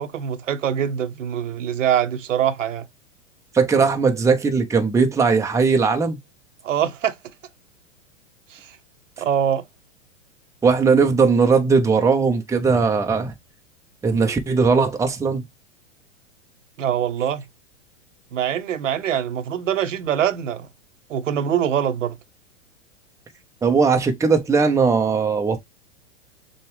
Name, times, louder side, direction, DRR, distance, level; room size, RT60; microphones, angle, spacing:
voice 1, 0.0-2.8 6.6-7.2 8.5-8.8 9.2-9.6 16.8-17.4 18.3-20.7 21.1-22.2, right 9 dB, 80° right, 0.8 m, -23 dB
voice 2, 3.5-6.2 10.6-13.3 14.0-15.4 23.6-25.6, right 5 dB, 10° right, 0.7 m, -18 dB
6.7 x 2.3 x 3.1 m
hypercardioid pair, 110°, 37 cm